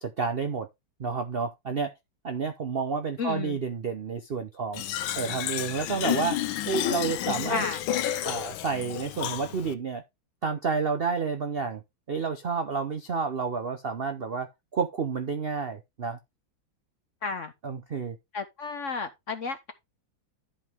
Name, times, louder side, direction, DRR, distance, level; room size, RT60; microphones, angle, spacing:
voice 1, 0.0-0.7 1.0-1.9 2.2-4.8 5.2-6.4 6.7-7.6 8.2-10.0 10.4-11.8 12.1-16.2 17.6-18.2, right 5 dB, 60° right, 0.6 m, -30 dB
voice 2, 3.2-3.6 7.5-7.8 17.2-17.5 18.3-19.7, left 5 dB, 55° left, 0.9 m, -32 dB
Fill (with liquid), 4.7-9.7, left 12 dB, 90° left, 1.4 m, -31 dB
11.5 x 5.5 x 3.5 m
omnidirectional pair, 2.1 m